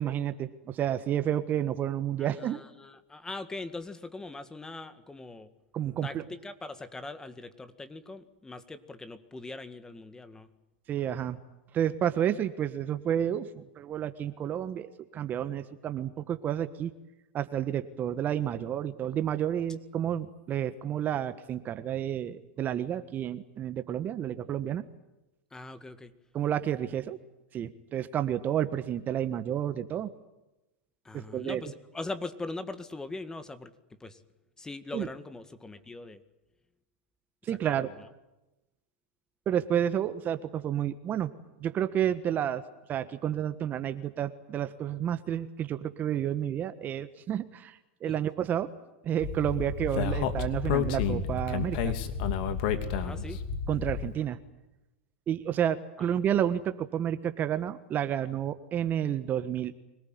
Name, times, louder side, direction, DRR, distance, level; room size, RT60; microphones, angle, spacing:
voice 1, 0.0-2.6 5.7-6.2 10.9-11.4 11.7-16.9 17.3-24.8 26.3-27.2 27.5-30.1 31.1-31.6 34.9-35.1 37.5-37.9 39.5-41.3 41.6-42.6 42.9-48.7 49.0-51.9 53.7-54.4 55.3-59.7, right 10 dB, 30° right, 11 dB, 1.4 m, -30 dB
voice 2, 2.2-5.5 6.0-10.5 25.5-26.1 31.1-33.7 34.0-34.2 34.6-36.2 37.6-38.1 48.0-48.2 52.9-53.4 56.0-56.1, left 2 dB, 10° left, 11 dB, 1.9 m, -41 dB
Speech, 49.2-54.1, left 6 dB, 60° left, 2.7 m, -30 dB
25.5 x 18.5 x 9.5 m, 0.98 s
hypercardioid pair, 120°, 6 cm